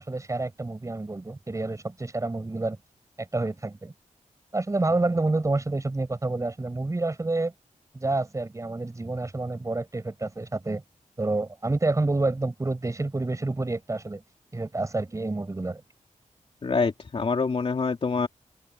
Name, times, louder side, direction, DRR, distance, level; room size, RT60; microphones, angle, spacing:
voice 1, 0.0-2.8 3.2-3.9 4.5-7.5 7.9-10.8 11.2-14.2 14.5-15.8, right 2 dB, 25° right, 7.7 m, -28 dB
voice 2, 16.6-18.3, left 4 dB, 45° left, 2.8 m, -26 dB
wide cardioid pair, 165°, 14 cm